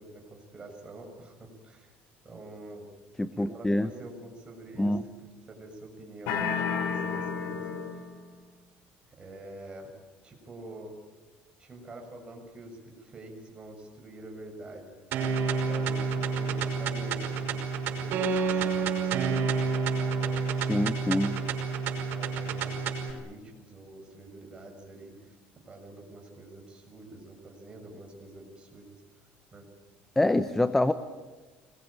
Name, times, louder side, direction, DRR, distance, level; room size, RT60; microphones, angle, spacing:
voice 1, 0.0-1.9 2.2-2.9 3.3-7.6 7.8-8.1 9.2-9.9 10.2-10.9 11.6-15.4 15.6-20.4 21.2-21.5 22.1-25.4 25.7-28.9 29.5-29.6, right 2 dB, 25° right, 2 dB, 6.8 m, -46 dB
voice 2, 3.2-3.9 4.8-5.0 20.7-21.4 30.2-30.9, left 1 dB, 10° left, 11 dB, 0.9 m, -25 dB
sound 1, 6.3-8.2, left 6 dB, 80° left, 3.7 m, -31 dB
sound 2, 15.1-23.1, right 5 dB, 55° right, 5.5 m, -29 dB
26.0 x 21.5 x 8.9 m, 1.3 s
cardioid pair, 140°, 4 cm